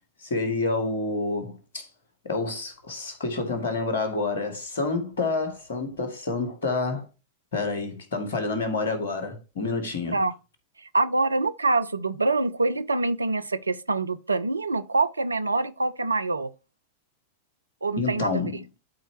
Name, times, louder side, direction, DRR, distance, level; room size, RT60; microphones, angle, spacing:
voice 1, 0.2-1.9 2.2-7.1 7.5-10.2 18.0-18.6, left 3 dB, 65° left, 2.0 m, -28 dB
voice 2, 10.9-16.5 17.8-18.6, right 3 dB, 80° right, 0.4 m, -25 dB
12.5 x 4.4 x 2.8 m
figure-of-eight pair, 90°, 0 cm